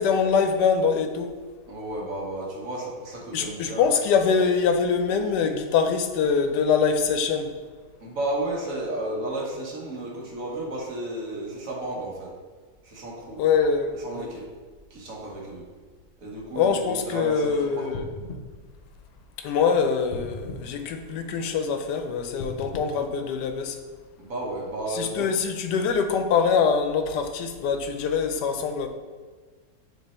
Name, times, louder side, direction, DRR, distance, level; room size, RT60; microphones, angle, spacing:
voice 1, 0.0-1.4 3.3-7.6 13.4-14.3 16.6-18.0 19.4-23.8 24.9-28.9, left 6 dB, 85° left, 7 dB, 1.2 m, -24 dB
voice 2, 1.7-3.9 8.0-12.3 12.8-13.4 13.9-14.5 14.9-15.6 16.2-17.9 24.2-25.3, right 1 dB, 55° right, -3 dB, 1.5 m, -33 dB
sound 1, 17.9-19.6 20.1-21.6 22.3-24.0 24.5-24.6, left 2 dB, 55° left, 0.6 m, -40 dB
7.4 x 3.2 x 4.2 m, 1.5 s
omnidirectional pair, 1.8 m